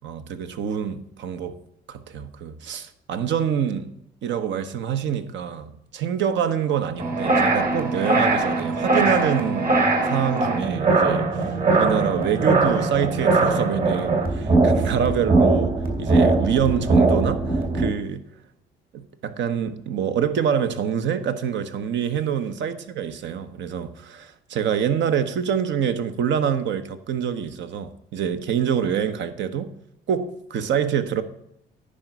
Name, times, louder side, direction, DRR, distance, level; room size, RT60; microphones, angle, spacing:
voice 1, 0.0-1.6 1.9-3.9 4.2-9.8 10.0-18.2 18.9-29.7 30.1-31.2, right 8 dB, 65° right, 1.0 m, -26 dB
sound 1, 7.0-17.9, right 3 dB, 50° right, 2.7 m, -21 dB
10.0 x 5.1 x 6.8 m
supercardioid pair, 75°, 20 cm